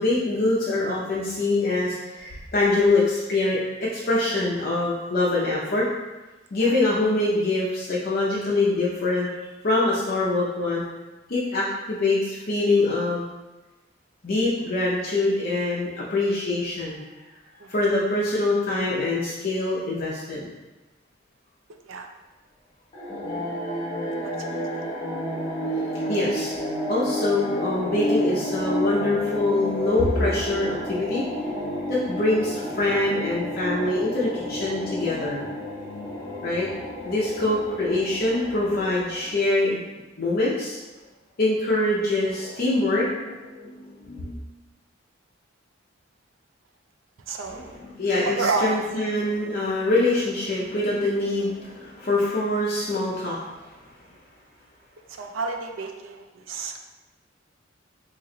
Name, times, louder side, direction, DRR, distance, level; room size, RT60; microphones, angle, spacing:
voice 1, 0.0-5.8 6.5-9.3 9.6-10.8 11.3-13.2 14.2-17.0 17.5-20.5 26.1-26.5 26.9-31.3 31.9-35.4 36.4-36.7 37.0-39.8 40.2-40.8 41.4-44.4 47.5-53.4, left 2 dB, 50° left, -7 dB, 0.6 m, -24 dB
sound 1, 22.9-39.5, equal, 30° left, 1.1 m, -30 dB
voice 2, 24.2-24.8 26.8-26.9 47.3-47.6 48.3-48.9 55.1-56.8, right 4 dB, 90° right, 4 dB, 0.4 m, -30 dB
3.0 x 2.5 x 3.8 m, 1.1 s
head